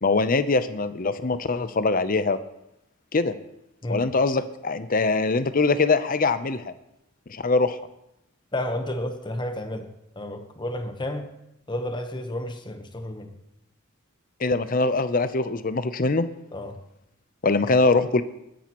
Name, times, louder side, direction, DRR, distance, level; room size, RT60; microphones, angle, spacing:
voice 1, 0.0-2.4 3.1-3.4 3.9-6.7 7.3-7.8 14.4-16.2 17.4-18.2, left 3 dB, 40° left, 12 dB, 0.6 m, -22 dB
voice 2, 3.8-4.1 8.5-9.9 10.2-11.3 11.7-13.3 16.5-16.8, left 1 dB, 20° left, 6 dB, 1.0 m, -31 dB
20.0 x 10.5 x 3.0 m, 0.83 s
head